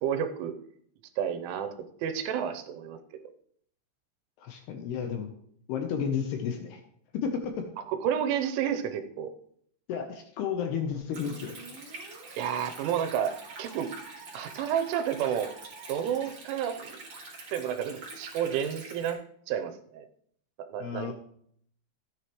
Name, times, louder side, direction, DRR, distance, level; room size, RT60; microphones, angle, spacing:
voice 1, 0.0-0.5 1.2-1.7 2.0-3.0 7.9-9.3 12.4-13.9 14.3-15.5 15.9-17.0 17.5-19.2 19.5-20.1 20.7-21.1, right 9 dB, 85° right, 8 dB, 3.2 m, -30 dB
voice 2, 4.4-5.3 5.7-6.8 7.1-7.7 9.9-11.5 18.1-18.2 20.8-21.1, left 7 dB, 75° left, 4 dB, 2.5 m, -32 dB
Stream, 11.1-19.1, right 3 dB, 35° right, 2.1 m, -46 dB
Musical instrument, 11.1-16.3, right 4 dB, 65° right, 1.5 m, -50 dB
13.0 x 9.3 x 3.1 m, 0.66 s
omnidirectional pair, 5.6 m